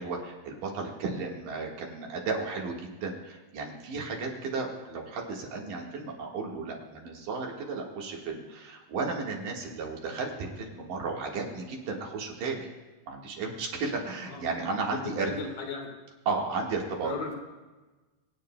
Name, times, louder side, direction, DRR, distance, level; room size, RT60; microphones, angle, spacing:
voice 1, 0.0-12.7 13.1-15.3 16.3-17.1, right 4 dB, 80° right, 0 dB, 3.2 m, -34 dB
voice 2, 14.9-15.9 17.0-17.3, left 4 dB, 70° left, 1 dB, 3.1 m, -36 dB
25.5 x 9.4 x 2.2 m, 1.2 s
omnidirectional pair, 3.8 m